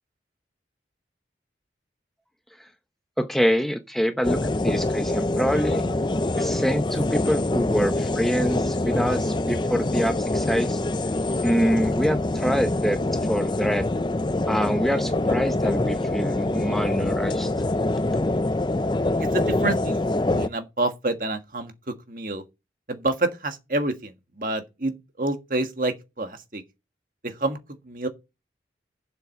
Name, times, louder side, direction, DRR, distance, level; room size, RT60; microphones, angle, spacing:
voice 1, 3.2-5.9 6.3-10.8 11.4-13.9 14.5-17.5, equal, ahead, 0.8 m, -25 dB
sound 1, 4.2-20.5, left 2 dB, 25° left, 0.5 m, -25 dB
voice 2, 19.2-19.9 20.3-22.4 22.9-26.6 27.2-27.6 27.8-28.1, right 2 dB, 50° right, 1.6 m, -28 dB
7.7 x 7.0 x 6.7 m
head